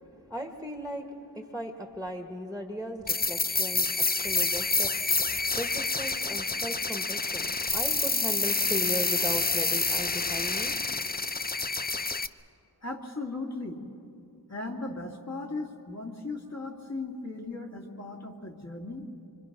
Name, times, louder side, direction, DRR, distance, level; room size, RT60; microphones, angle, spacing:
voice 1, 0.3-5.1 5.5-10.8, equal, 5° left, 4 dB, 1.8 m, -37 dB
sound 1, 3.1-12.3, left 3 dB, 20° left, 0.6 m, -28 dB
voice 2, 12.8-13.8 14.5-19.1, left 3 dB, 40° left, 1 dB, 2.6 m, -37 dB
25.5 x 25.0 x 6.1 m, 2.7 s
wide cardioid pair, 50°, 42 cm